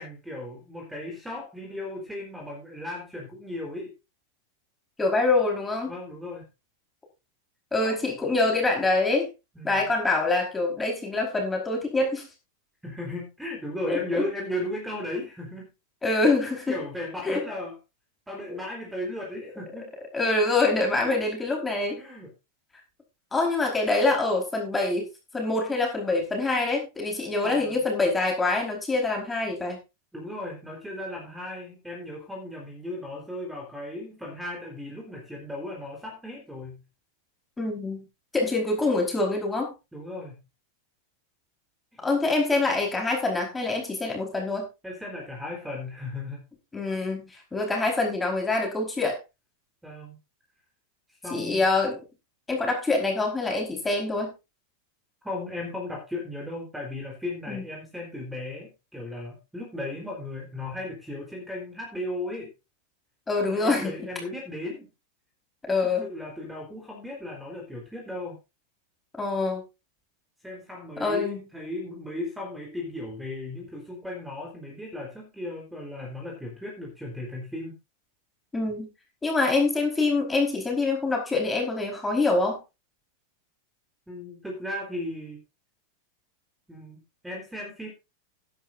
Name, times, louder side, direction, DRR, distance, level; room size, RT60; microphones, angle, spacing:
voice 1, 0.0-3.9 5.9-6.4 7.8-8.0 9.6-9.8 12.8-15.7 16.5-17.7 18.3-19.9 21.0-21.2 22.0-22.3 27.3-27.8 30.1-36.8 39.9-40.4 44.8-46.4 49.8-50.2 51.2-51.6 55.2-62.5 63.4-64.9 65.7-68.4 70.4-77.8 84.1-85.4 86.7-87.9, left 1 dB, 5° right, 0 dB, 4.2 m, -36 dB
voice 2, 5.0-5.9 7.7-9.3 9.6-12.3 13.9-14.2 16.0-16.8 17.2-17.4 18.4-18.6 20.1-22.0 23.3-25.1 25.3-29.8 37.6-38.0 38.3-39.7 42.0-44.7 46.7-49.2 51.3-52.0 52.5-54.3 57.5-57.6 63.3-64.1 65.7-66.1 69.2-69.6 71.0-71.4 78.5-78.9 79.2-82.6, left 3 dB, 10° left, 1 dB, 4.9 m, -25 dB
16.5 x 11.0 x 2.7 m, 0.27 s
figure-of-eight pair, 90°, 0 cm